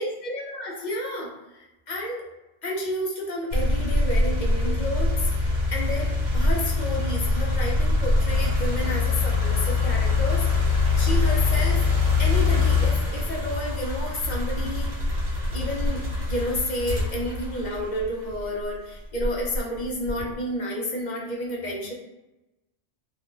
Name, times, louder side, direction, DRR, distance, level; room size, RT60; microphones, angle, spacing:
voice 1, 0.0-1.3 1.9-2.2 2.6-11.9 12.2-14.9 15.5-21.9, left 1 dB, 45° left, -3 dB, 0.7 m, -31 dB
sound 1, 3.5-18.5 19.1-20.3, left 3 dB, 55° right, 1.0 m, -24 dB
2.5 x 2.4 x 3.7 m, 0.98 s
omnidirectional pair, 1.2 m